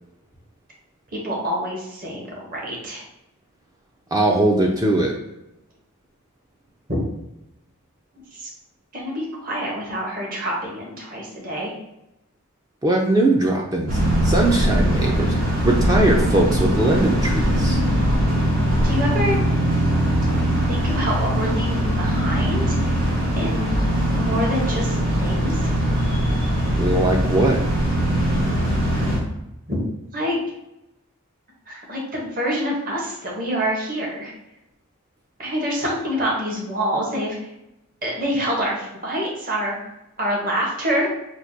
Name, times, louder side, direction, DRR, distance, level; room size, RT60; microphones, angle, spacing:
voice 1, 1.1-3.0 8.3-8.5 8.9-11.7 18.8-19.4 20.7-23.0 23.4-23.8 24.2-25.8 29.7-29.8 30.1-30.4 31.7-34.3 35.4-37.4 38.0-39.7 40.2-41.1, equal, 40° right, -3 dB, 0.9 m, -26 dB
voice 2, 4.1-5.1 12.8-15.3 15.6-17.8 26.8-27.6, right 2 dB, 15° right, -1 dB, 0.3 m, -20 dB
sound 1, 13.9-29.2, equal, 70° right, 1.3 m, -21 dB
4.4 x 2.1 x 2.6 m, 0.89 s
head